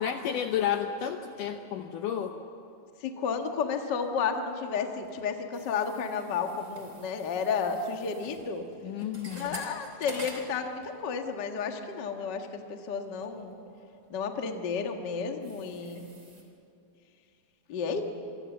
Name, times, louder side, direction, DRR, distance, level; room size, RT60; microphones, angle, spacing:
voice 1, 0.0-2.4 8.8-9.6, left 9 dB, 75° left, 6 dB, 2.0 m, -31 dB
voice 2, 3.0-8.6 9.3-13.6 14.1-16.0 17.7-18.0, left 5 dB, 55° left, 4 dB, 1.2 m, -32 dB
sound 1, 3.5-4.4 4.7-11.3 11.6-11.9 12.4-12.5 13.0-16.4, right 2 dB, 20° right, 3.2 m, -49 dB
27.5 x 23.0 x 7.3 m, 2.6 s
omnidirectional pair, 4.6 m